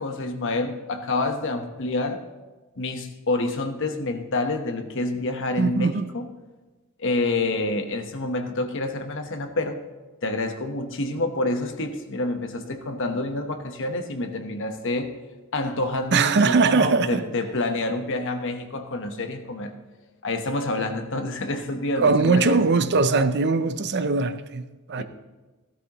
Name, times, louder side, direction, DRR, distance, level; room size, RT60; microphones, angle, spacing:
voice 1, 0.0-2.2 2.8-6.3 7.0-9.8 10.2-15.1 15.5-19.7 20.2-22.6 25.0-25.1, left 2 dB, 60° left, 1.1 m, -28 dB
voice 2, 5.6-6.1 16.1-17.2 22.0-25.0, right 4 dB, 50° right, 0.6 m, -21 dB
16.5 x 12.5 x 3.0 m
head